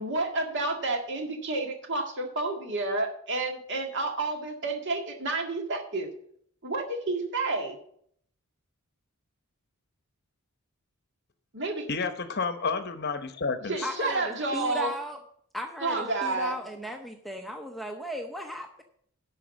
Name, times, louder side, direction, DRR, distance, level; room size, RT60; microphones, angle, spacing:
voice 1, 0.0-6.1 6.6-7.8 11.5-11.9 13.7-15.0 15.8-16.5, right 2 dB, 55° right, 3 dB, 1.9 m, -30 dB
voice 2, 11.9-13.9, left 4 dB, 45° left, 10 dB, 0.8 m, -30 dB
voice 3, 13.8-15.2 15.5-18.8, equal, ahead, 3 dB, 0.6 m, -36 dB
11.5 x 4.9 x 7.1 m, 0.65 s
head